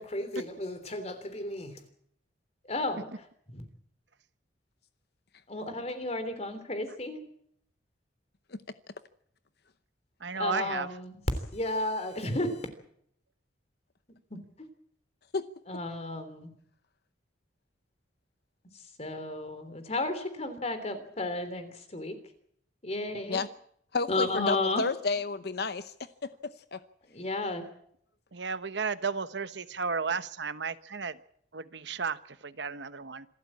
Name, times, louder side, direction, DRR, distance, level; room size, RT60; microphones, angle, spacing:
voice 1, 0.0-1.8 2.6-3.1 3.5-3.6 5.5-7.2 10.4-11.2 11.5-12.7 14.3-14.7 15.7-16.5 19.0-22.2 22.8-23.4 24.1-24.8 27.1-27.7, left 2 dB, 35° left, 9 dB, 3.3 m, -33 dB
voice 2, 10.2-10.9 28.3-31.2 31.5-33.3, right 5 dB, 70° right, 13 dB, 1.1 m, -33 dB
voice 3, 23.9-25.9 26.2-26.8, left 4 dB, 60° left, 12 dB, 0.8 m, -31 dB
26.5 x 13.5 x 8.6 m, 0.69 s
head